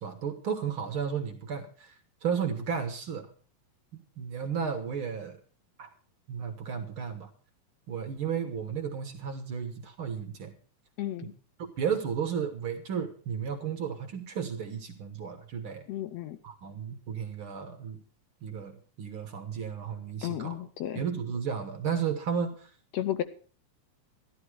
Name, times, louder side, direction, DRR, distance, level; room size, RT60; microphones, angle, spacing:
voice 1, 0.0-1.9 2.2-3.3 4.2-5.4 5.8-5.9 6.3-7.3 7.9-10.5 11.8-15.8 16.4-18.0 18.4-20.6 20.9-22.7, right 7 dB, 55° right, 6 dB, 1.8 m, -33 dB
voice 2, 11.0-11.3 15.9-16.4 20.2-21.0 22.9-23.2, left 12 dB, 75° left, 12 dB, 1.8 m, -33 dB
12.5 x 12.0 x 4.8 m, 0.41 s
omnidirectional pair, 3.4 m